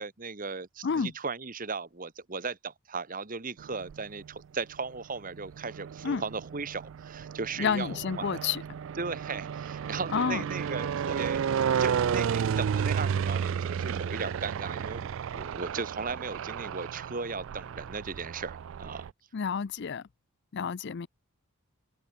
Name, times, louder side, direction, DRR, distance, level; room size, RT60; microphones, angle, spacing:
voice 1, 0.0-8.4 9.0-19.1, right 4 dB, 40° right, 1.4 m, -37 dB
sound 1, 3.6-4.3 5.1-19.1, right 7 dB, 60° right, 0.3 m, -32 dB
voice 2, 7.6-8.6 10.1-10.4 19.3-20.0 20.5-21.1, left 6 dB, 50° left, 0.4 m, -29 dB
head